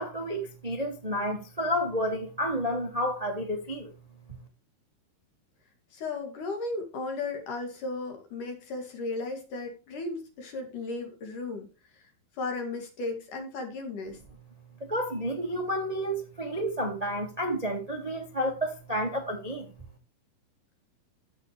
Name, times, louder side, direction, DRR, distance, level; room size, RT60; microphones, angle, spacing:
voice 1, 0.0-3.9 14.8-19.7, equal, 35° right, 0.5 m, -30 dB
voice 2, 5.9-11.7 12.4-14.2, left 3 dB, 60° left, 3.6 m, -35 dB
15.0 x 6.3 x 3.2 m
omnidirectional pair, 4.4 m